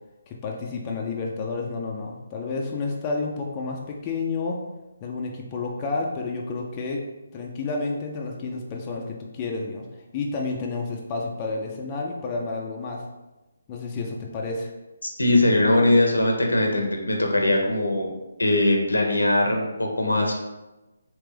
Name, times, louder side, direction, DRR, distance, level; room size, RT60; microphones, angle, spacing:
voice 1, 0.3-4.6 5.0-7.1 7.3-13.1 13.7-14.7, left 3 dB, 25° left, -1 dB, 0.4 m, -30 dB
voice 2, 15.0-18.1 18.4-20.3, left 1 dB, 90° left, 1 dB, 0.8 m, -21 dB
3.3 x 2.9 x 3.3 m, 1.0 s
figure-of-eight pair, 150°, 0 cm